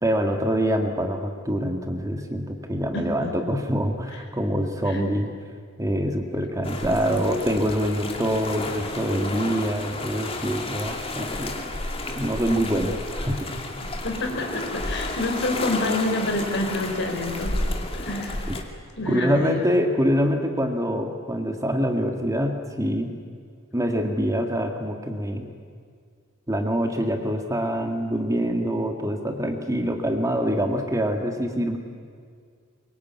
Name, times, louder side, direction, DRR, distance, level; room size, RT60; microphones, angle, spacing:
voice 1, 0.0-5.3 5.8-11.7 12.2-13.6 18.5-18.6 19.1-23.1 23.7-25.5 26.5-31.8, equal, 15° right, 4 dB, 1.9 m, -25 dB
voice 2, 2.9-3.3 4.9-5.0 6.8-7.2 14.0-17.6 17.9-18.5 19.0-19.6, left 2 dB, 55° left, 3 dB, 4.8 m, -28 dB
sound 1, 6.6-18.6, left 2 dB, 25° left, 2.5 m, -31 dB
24.0 x 22.5 x 9.5 m, 2.1 s
head